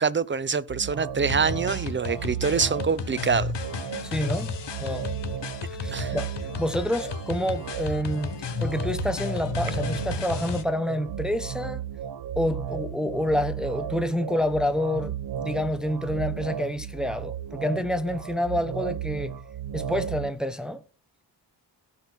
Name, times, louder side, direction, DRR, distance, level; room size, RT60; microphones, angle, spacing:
voice 1, 0.0-3.5 5.9-6.1, right 5 dB, 30° right, 0.7 m, -25 dB
sound 1, 0.7-20.3, right 9 dB, 65° right, 1.0 m, -34 dB
sound 2, 1.3-10.6, left 6 dB, 85° left, 1.4 m, -33 dB
voice 2, 4.0-5.1 5.7-6.3 6.6-11.8 12.4-19.3 19.7-20.8, left 1 dB, ahead, 1.0 m, -28 dB
16.0 x 5.6 x 6.2 m
wide cardioid pair, 105°, 41 cm